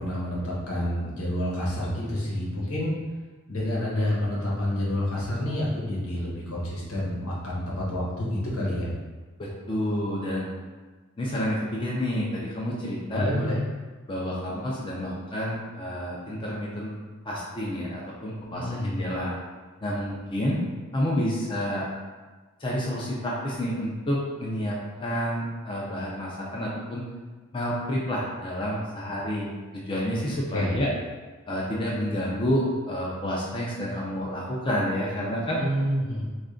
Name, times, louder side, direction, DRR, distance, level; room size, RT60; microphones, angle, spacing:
voice 1, 0.0-3.0 3.5-8.9 13.1-13.6 18.5-18.9 30.5-30.8 35.6-36.2, left 1 dB, 85° left, -5 dB, 1.1 m, -28 dB
voice 2, 9.4-10.5 11.2-13.3 14.1-17.0 17.2-19.3 19.8-20.6 20.9-21.9 22.6-27.0 27.5-30.9 31.5-35.6, equal, 25° left, -4 dB, 0.5 m, -29 dB
3.2 x 2.5 x 3.7 m, 1.3 s
head